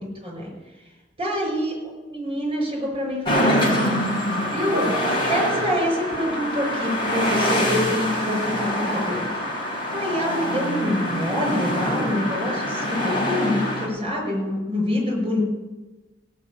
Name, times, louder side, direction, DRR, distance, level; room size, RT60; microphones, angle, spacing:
voice 1, 1.2-1.7 2.1-4.0 4.4-4.9 5.3-9.3 9.9-15.4, left 1 dB, 30° right, -1 dB, 6.2 m, -26 dB
sound 1, 3.2-13.9, equal, 30° left, 3.8 m, -25 dB
sound 2, 4.7-8.6, right 3 dB, 55° right, 1.8 m, -36 dB
17.0 x 6.2 x 8.7 m, 1.1 s
head